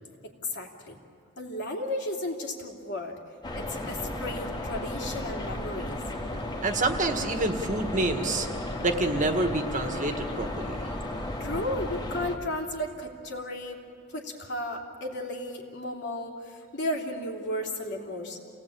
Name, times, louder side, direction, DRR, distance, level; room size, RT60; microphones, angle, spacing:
voice 1, 0.2-0.9 1.4-3.1 3.5-6.0 11.4-13.8 14.1-18.4, left 1 dB, 55° left, 1 dB, 3.1 m, -34 dB
sound 1, 3.4-12.4, left 1 dB, 20° left, 2.0 m, -34 dB
voice 2, 6.6-8.5 8.8-10.8, right 2 dB, 40° right, 5 dB, 1.7 m, -27 dB
28.5 x 18.5 x 8.8 m, 2.6 s
head